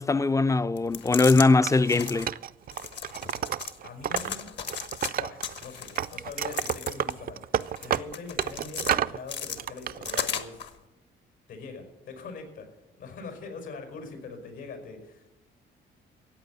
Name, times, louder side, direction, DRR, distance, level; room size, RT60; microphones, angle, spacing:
voice 1, 0.0-2.3, left 3 dB, 15° left, 0.4 m, -21 dB
sound 1, 0.8-1.5 1.8-2.3 2.7-3.8 4.1-5.1 5.4-7.2 7.6-8.9 9.3-10.7, left 7 dB, 60° left, 1.3 m, -35 dB
Wood, 1.6-4.3 4.6-5.6 6.0-9.2 9.6-10.2, right 10 dB, 45° right, 0.4 m, -31 dB
voice 2, 3.8-4.5 5.1-10.7 11.5-12.7 13.0-15.4, left 4 dB, 85° left, 5.1 m, -42 dB
14.5 x 9.0 x 8.1 m
cardioid pair, 90°, 20 cm